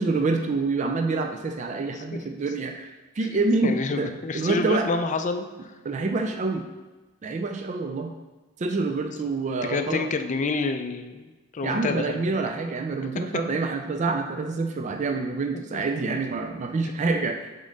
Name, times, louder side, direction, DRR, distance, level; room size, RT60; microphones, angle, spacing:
voice 1, 0.0-4.1 4.3-4.9 5.8-6.7 7.2-8.1 8.6-10.0 11.6-17.5, right 3 dB, 35° right, 4 dB, 0.3 m, -27 dB
voice 2, 3.6-5.4 9.6-12.3 15.7-15.8, left 3 dB, 35° left, 7 dB, 0.4 m, -28 dB
5.3 x 3.8 x 5.2 m, 1.2 s
head